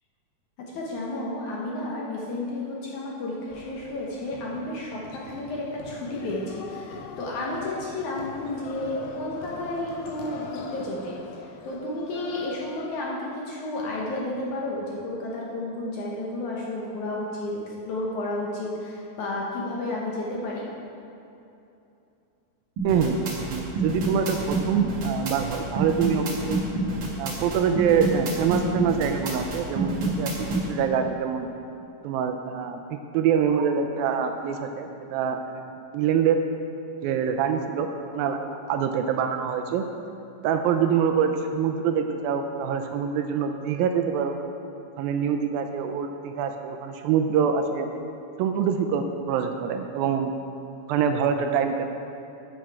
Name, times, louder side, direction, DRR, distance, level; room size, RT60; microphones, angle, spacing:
voice 1, 0.6-20.7, left 1 dB, 65° left, -4 dB, 2.0 m, -32 dB
sound 1, 3.5-13.0, left 5 dB, 85° left, 2.5 m, -41 dB
sound 2, 22.8-30.6, right 2 dB, 60° right, 1.3 m, -27 dB
voice 2, 22.8-26.6 27.2-31.5 32.0-36.4 37.0-37.9 38.1-38.4 38.7-39.8 40.4-44.4 45.0-47.9 48.4-50.3 50.9-51.9, right 7 dB, 80° right, 6 dB, 2.2 m, -25 dB
11.5 x 6.3 x 4.6 m, 2.8 s
omnidirectional pair, 4.3 m